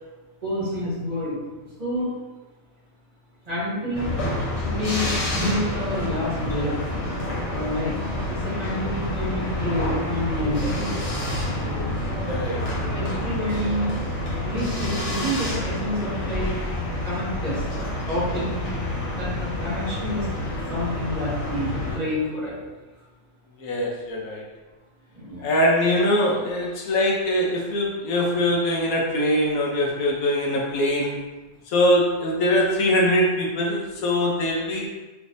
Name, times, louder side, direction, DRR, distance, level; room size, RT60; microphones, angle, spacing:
voice 1, 0.4-1.4 1.8-2.1 3.5-4.1 4.7-6.7 7.5-7.9 8.3-11.8 12.9-13.9 14.4-16.6 17.0-18.6 19.1-20.3 20.7-22.6 25.1-25.5, left 1 dB, 30° right, -10 dB, 1.3 m, -28 dB
sound 1, 3.9-22.0, left 1 dB, 40° left, 0.5 m, -28 dB
voice 2, 11.5-11.8 12.3-12.6 23.6-24.4 25.4-31.2 31.7-34.9, left 1 dB, 80° left, -1 dB, 1.1 m, -22 dB
3.2 x 3.1 x 2.6 m, 1.2 s
omnidirectional pair, 1.5 m